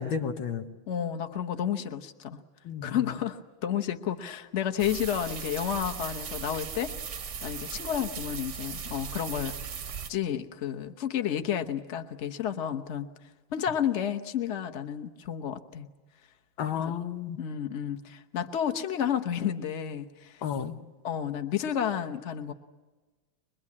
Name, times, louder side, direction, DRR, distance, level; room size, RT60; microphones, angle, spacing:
voice 1, 0.0-0.7 2.6-3.2 16.6-17.4 20.4-20.8, left 7 dB, 75° left, 7 dB, 2.0 m, -32 dB
voice 2, 0.9-2.4 2.8-6.9 7.4-9.5 10.1-13.1 13.5-15.9 16.8-16.9 17.4-20.4 21.0-22.5, left 9 dB, 40° left, 6 dB, 1.2 m, -31 dB
sound 1, 4.8-10.1, right 7 dB, 50° right, 1.0 m, -38 dB
24.0 x 22.0 x 8.6 m, 1.3 s
omnidirectional pair, 2.2 m